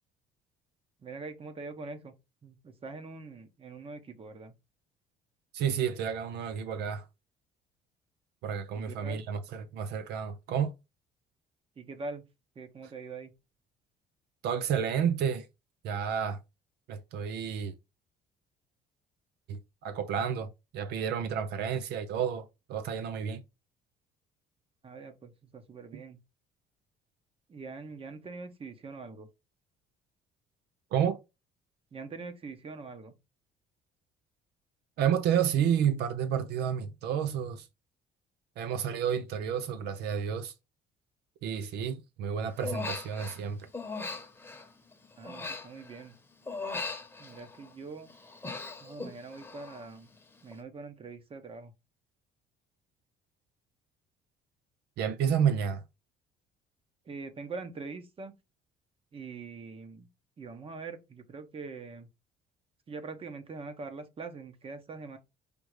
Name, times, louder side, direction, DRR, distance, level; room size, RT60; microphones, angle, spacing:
voice 1, 1.0-2.1 2.4-4.5 8.8-9.2 11.8-12.2 12.5-13.3 24.8-26.2 27.5-29.3 31.9-33.1 45.2-46.1 47.2-48.1 48.8-50.1 50.4-51.7 57.1-58.3 59.1-60.1 60.4-62.1 62.9-65.2, right 4 dB, 35° right, 0.8 m, -43 dB
voice 2, 5.5-7.0 8.4-10.7 14.4-15.5 15.8-16.4 16.9-17.7 19.5-23.4 30.9-31.2 35.0-37.7 38.6-40.5 41.4-43.7 55.0-55.8, right 8 dB, 75° right, 0.5 m, -30 dB
Human voice, 42.6-43.4 43.7-46.1 46.5-47.7 48.1-49.9 50.1-50.5, left 3 dB, 15° left, 1.0 m, -39 dB
5.2 x 2.0 x 4.6 m
cardioid pair, 110°, 17 cm